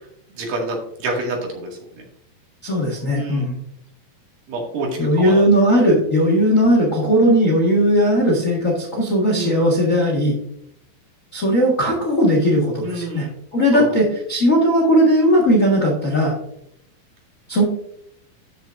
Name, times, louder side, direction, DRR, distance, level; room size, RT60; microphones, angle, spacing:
voice 1, 0.4-1.7 2.0-2.1 3.1-3.4 4.5-4.9 5.1-5.5 9.3-9.6 12.8-13.3 13.7-13.8, right 2 dB, 70° right, -1 dB, 3.7 m, -27 dB
voice 2, 2.6-3.6 5.0-10.3 11.3-13.3 13.5-16.3 17.5-17.6, equal, 40° left, -2 dB, 1.1 m, -17 dB
13.5 x 6.4 x 2.5 m, 0.73 s
omnidirectional pair, 4.2 m